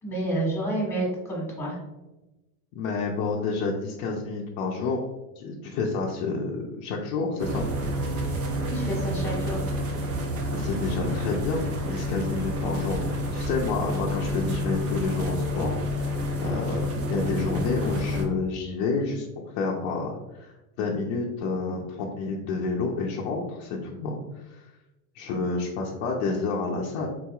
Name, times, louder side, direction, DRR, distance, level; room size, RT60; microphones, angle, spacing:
voice 1, 0.0-1.8 8.7-9.6, right 1 dB, 5° left, -4 dB, 1.5 m, -29 dB
voice 2, 2.7-5.0 5.4-7.6 10.5-13.0 13.3-24.6 25.1-27.1, left 4 dB, 55° left, -2 dB, 0.6 m, -29 dB
sound 1, 7.4-18.2, left 1 dB, 35° right, 0.6 m, -29 dB
3.9 x 2.9 x 2.3 m, 1.0 s
supercardioid pair, 125°, 41 cm